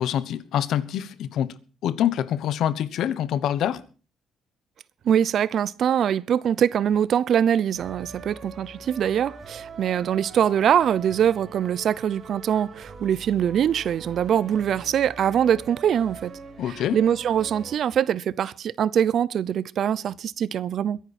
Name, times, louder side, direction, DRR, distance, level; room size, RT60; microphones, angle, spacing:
voice 1, 0.0-1.5 1.8-3.8 16.6-17.0, left 10 dB, 75° left, 1.1 m, -25 dB
voice 2, 5.0-16.3 16.7-21.0, right 9 dB, 60° right, 0.7 m, -23 dB
sound 1, 7.8-17.8, right 4 dB, 45° right, 3.4 m, -43 dB
22.5 x 10.5 x 4.3 m
cardioid pair, 105°, 0 cm